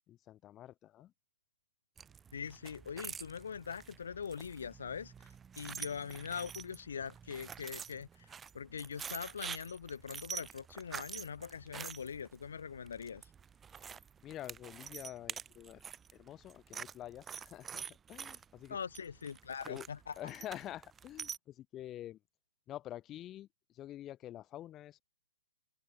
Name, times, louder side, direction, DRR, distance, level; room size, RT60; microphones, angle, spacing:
voice 1, 0.1-1.1 13.7-13.8 14.2-15.8 16.1-18.8 19.6-19.9 20.2-22.2 22.7-25.0, left 13 dB, 25° left, 1.2 m, -47 dB
sound 1, 2.0-21.4, right 7 dB, 15° right, 0.9 m, -47 dB
voice 2, 2.3-13.2 18.7-20.1, left 6 dB, 70° left, 0.7 m, -42 dB
open air
hypercardioid pair, 125°, 0 cm